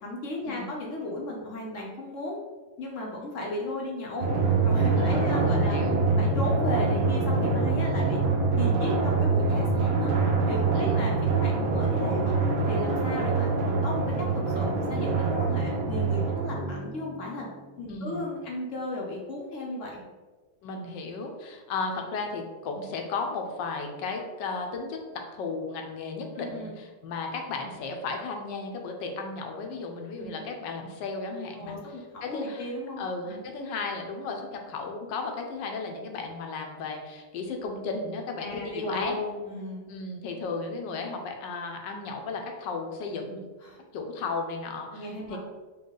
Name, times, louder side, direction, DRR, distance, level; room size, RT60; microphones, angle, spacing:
voice 1, 0.0-2.4 2.8-4.3 4.6-5.8 6.2-8.2 8.6-10.1 10.5-12.3 12.7-13.5 13.8-17.5 17.8-20.0 26.4-26.8 30.2-30.4 31.6-33.5 38.4-39.8 43.6-43.8 44.9-45.4, left 2 dB, 60° left, -2 dB, 0.8 m, -35 dB
Drum, 4.2-17.3, right 3 dB, 85° right, 0.6 m, -25 dB
voice 2, 5.0-6.0 7.9-8.2 10.7-11.0 17.9-18.3 20.6-31.8 32.2-32.7 33.0-39.2 39.9-43.4 43.9-45.4, left 4 dB, 80° left, 3 dB, 1.3 m, -35 dB
4.5 x 2.3 x 3.7 m, 1.3 s
omnidirectional pair, 2.0 m